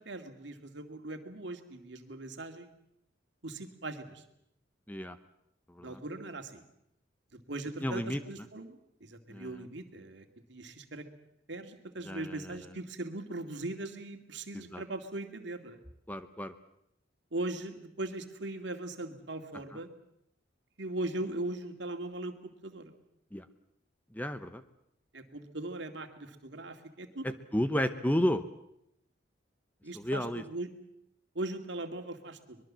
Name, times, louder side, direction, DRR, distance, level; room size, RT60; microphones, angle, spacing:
voice 1, 0.0-2.7 3.4-4.2 5.8-6.6 7.3-11.0 11.5-15.8 17.3-19.9 20.8-22.9 25.1-27.3 29.8-30.7 31.3-32.6, right 2 dB, 65° right, 6 dB, 2.4 m, -39 dB
voice 2, 7.8-8.2 9.3-9.5 12.0-12.7 14.7-14.8 16.1-16.5 23.3-23.4 24.1-24.6 27.5-28.4 29.9-30.4, equal, 10° left, 10 dB, 0.8 m, -32 dB
24.0 x 21.5 x 7.5 m, 0.77 s
head